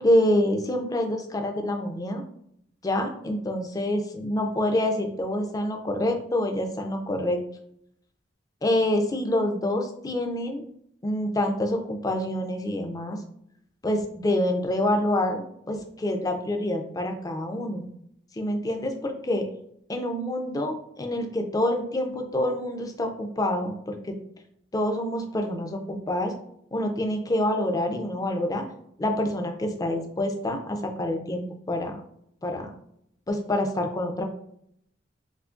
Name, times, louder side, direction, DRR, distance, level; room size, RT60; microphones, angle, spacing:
voice 1, 0.0-2.2 2.8-7.4 8.6-10.6 11.0-13.2 13.8-17.9 18.3-19.4 19.9-24.1 24.7-26.3 26.7-28.7 29.0-32.0 32.4-32.7 33.3-34.2, left 1 dB, 20° left, 4 dB, 0.4 m, -27 dB
2.7 x 2.3 x 3.7 m, 0.71 s
head